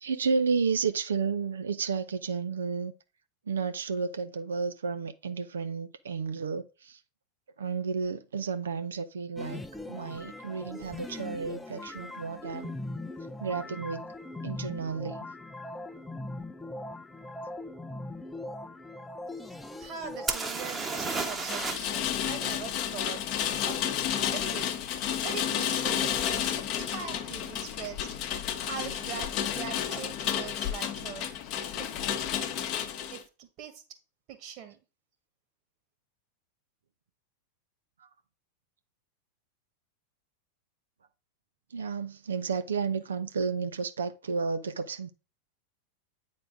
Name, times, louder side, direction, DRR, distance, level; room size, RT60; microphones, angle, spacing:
voice 1, 0.0-2.9 3.5-7.0 7.6-12.7 13.4-14.1 14.4-15.3 38.0-38.1 41.7-45.1, right 5 dB, 70° right, 0.6 m, -32 dB
sound 1, 9.4-20.4, left 2 dB, 5° left, 0.6 m, -40 dB
voice 2, 19.8-23.2 23.6-24.0 24.2-24.7 25.2-28.1 28.6-31.3 31.7-32.0 33.1-33.8 34.3-34.8, right 8 dB, 40° right, 1.9 m, -42 dB
sound 2, 20.3-22.0 22.3-22.4 25.8-25.9 26.5-26.7 26.9-27.5 29.6-29.7 29.9-30.0, right 3 dB, 15° right, 1.2 m, -33 dB
Rain, 20.9-33.2, left 9 dB, 40° left, 0.9 m, -31 dB
9.0 x 3.9 x 4.9 m
figure-of-eight pair, 90°, 0 cm